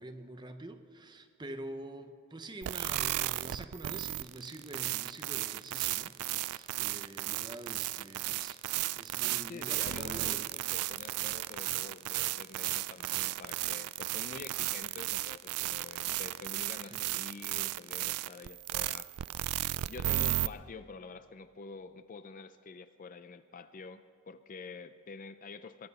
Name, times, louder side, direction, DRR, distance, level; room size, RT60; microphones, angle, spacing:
voice 1, 0.0-8.6 8.9-10.4 16.8-17.1 20.2-20.3, right 2 dB, 20° right, 0.7 m, -46 dB
sound 1, 2.6-20.5, right 15 dB, 80° right, 0.3 m, -34 dB
voice 2, 9.5-19.1 19.9-25.9, left 4 dB, 35° left, 0.4 m, -47 dB
22.0 x 10.5 x 5.5 m
head